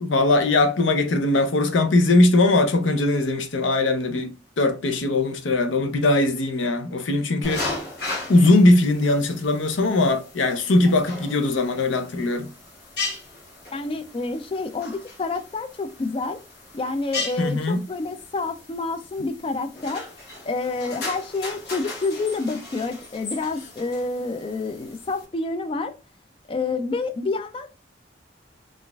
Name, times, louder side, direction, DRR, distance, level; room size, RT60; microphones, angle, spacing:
voice 1, 0.0-7.7 8.3-12.5 17.4-17.8, left 2 dB, 85° left, 0.6 m, -20 dB
sound 1, 7.4-25.2, left 3 dB, 60° left, 1.0 m, -37 dB
voice 2, 13.7-16.4 16.7-20.0 20.5-25.9 26.5-27.7, left 3 dB, 30° left, 0.3 m, -28 dB
4.0 x 2.4 x 2.2 m
head